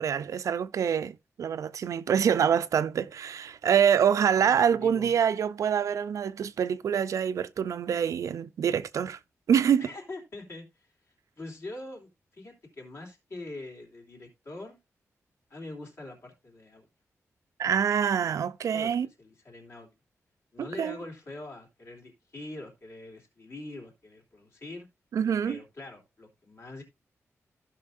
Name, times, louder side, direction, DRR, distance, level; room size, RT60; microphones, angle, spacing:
voice 1, 0.0-9.2 9.5-9.9 17.6-19.1 20.6-21.0 25.1-25.6, right 8 dB, 85° right, 0.5 m, -26 dB
voice 2, 4.4-5.2 9.8-14.8 15.5-16.9 18.3-18.4 18.7-19.9 20.5-24.9 25.4-26.8, left 2 dB, 50° left, 3.2 m, -44 dB
16.0 x 5.7 x 2.6 m
wide cardioid pair, 170°, 5 cm